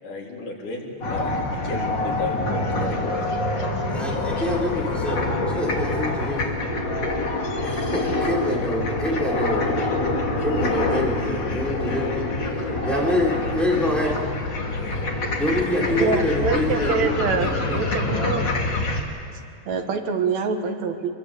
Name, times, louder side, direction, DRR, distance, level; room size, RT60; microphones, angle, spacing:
voice 1, 0.0-3.3, left 3 dB, 85° left, -2 dB, 5.2 m, -33 dB
Avião e Patos Parque da Cidade, 1.0-19.0, left 2 dB, 40° left, 3.0 m, -26 dB
voice 2, 3.9-6.5 7.6-9.9 10.4-12.2 12.8-14.1 14.7-14.9 15.4-17.2 17.5-17.8, left 1 dB, ahead, -3 dB, 4.6 m, -26 dB
voice 3, 16.0-18.4 19.7-21.1, right 5 dB, 65° right, 6 dB, 2.7 m, -25 dB
26.0 x 22.0 x 8.3 m, 2.3 s
omnidirectional pair, 3.5 m